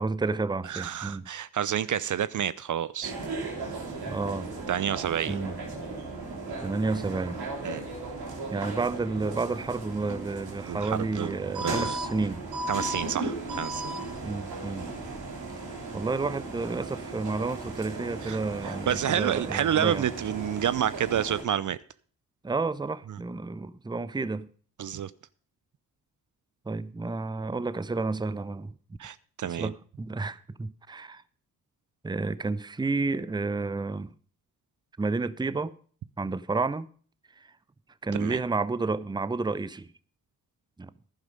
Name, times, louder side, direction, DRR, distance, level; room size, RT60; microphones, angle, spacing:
voice 1, 0.0-1.3 4.1-4.5 5.3-5.5 6.6-7.4 8.5-12.5 14.0-14.9 15.9-20.1 22.4-24.5 26.7-28.7 29.4-31.2 32.0-34.1 35.0-35.7 36.2-36.9 37.4-37.5 38.0-39.9 40.8-40.9, right 3 dB, 10° right, 0.6 m, -31 dB
voice 2, 0.6-3.1 4.7-5.4 7.6-7.9 10.7-11.3 11.6-12.0 12.7-14.0 18.2-18.4 18.6-21.8 23.1-23.2 24.8-25.1 29.0-29.7 38.1-38.4, right 10 dB, 50° right, 0.6 m, -29 dB
sound 1, 3.0-21.4, right 2 dB, 65° right, 3.1 m, -36 dB
11.0 x 10.5 x 5.1 m
supercardioid pair, 50°, 40 cm